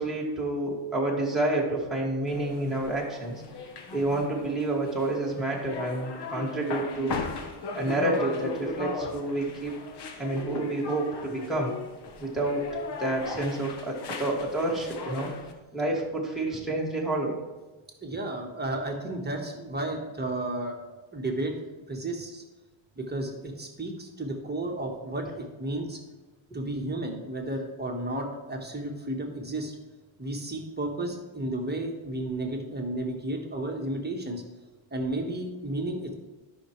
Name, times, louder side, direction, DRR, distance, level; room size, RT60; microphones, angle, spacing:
voice 1, 0.0-3.4 3.9-7.2 7.7-9.7 10.2-11.7 12.2-12.7 13.0-15.3 15.7-17.3, right 2 dB, ahead, -4 dB, 2.1 m, -29 dB
sound 1, 2.3-15.5, left 4 dB, 50° left, 1.3 m, -37 dB
voice 2, 18.0-20.8 21.1-21.5 21.9-22.4 23.0-26.0 26.5-29.8 30.2-34.4 34.9-36.1, right 1 dB, 20° right, 1 dB, 1.4 m, -32 dB
12.5 x 5.9 x 3.2 m, 1.2 s
cardioid pair, 110°, 50 cm